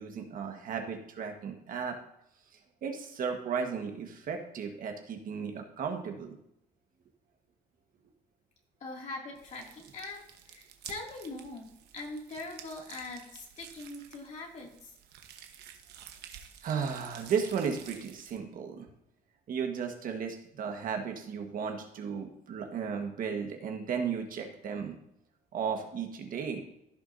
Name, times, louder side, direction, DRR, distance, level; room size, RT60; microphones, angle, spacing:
voice 1, 0.0-2.0 2.8-6.4 16.6-18.9 19.5-25.0 25.5-26.6, right 6 dB, 55° right, 4 dB, 1.5 m, -35 dB
voice 2, 8.8-11.7 11.9-15.0, left 2 dB, 45° left, -1 dB, 2.6 m, -42 dB
sound 1, 9.4-18.4, right 9 dB, 75° right, 1.1 m, -51 dB
15.5 x 6.0 x 2.7 m, 0.78 s
cardioid pair, 110°, 17 cm